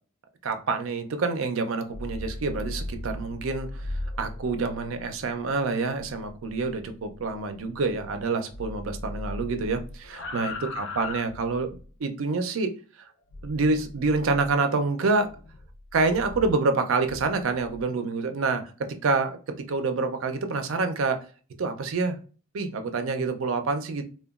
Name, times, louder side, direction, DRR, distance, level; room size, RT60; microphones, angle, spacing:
voice 1, 0.4-11.8 12.0-12.8 13.4-15.3 15.9-21.2 21.6-22.2 22.5-24.0, right 3 dB, 65° right, 0.4 m, -27 dB
sound 1, 1.8-8.2 8.5-11.9 13.3-14.6 15.2-17.8, left 1 dB, 60° left, 0.4 m, -39 dB
2.9 x 2.2 x 2.3 m
head